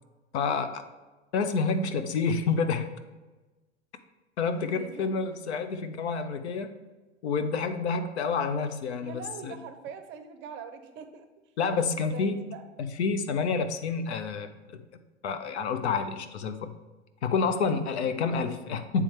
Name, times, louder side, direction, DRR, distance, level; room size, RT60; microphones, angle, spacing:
voice 1, 0.3-0.8 1.3-2.9 4.4-6.7 7.2-9.6 11.6-12.4 12.8-14.8 15.2-16.7 17.2-19.0, left 5 dB, 70° left, 9 dB, 0.6 m, -28 dB
voice 2, 4.5-5.4 9.0-11.5 11.9-12.6, right 7 dB, 35° right, 8 dB, 0.6 m, -43 dB
8.3 x 3.4 x 3.3 m, 1.2 s
figure-of-eight pair, 90°, 35 cm